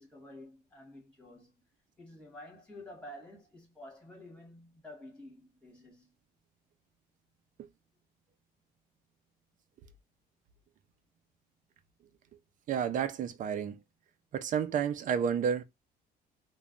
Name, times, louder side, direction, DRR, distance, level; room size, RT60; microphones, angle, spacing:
voice 1, 0.0-1.5 2.0-6.1, left 1 dB, 5° left, 1.6 m, -50 dB
voice 2, 12.7-13.8 14.3-15.6, right 7 dB, 50° right, 0.5 m, -30 dB
3.1 x 2.2 x 2.4 m
cardioid pair, 110°, 17 cm